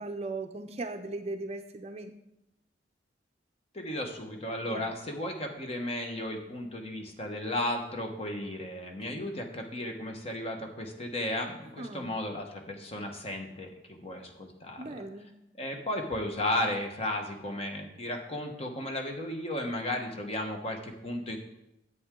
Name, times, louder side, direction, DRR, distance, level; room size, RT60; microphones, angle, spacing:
voice 1, 0.0-2.1 4.7-4.9 9.1-9.3 11.8-12.2 14.8-15.3, right 2 dB, 35° right, 6 dB, 0.5 m, -38 dB
voice 2, 3.7-15.0 15.6-21.4, left 1 dB, 35° left, 3 dB, 1.2 m, -34 dB
10.5 x 8.0 x 3.7 m, 0.86 s
head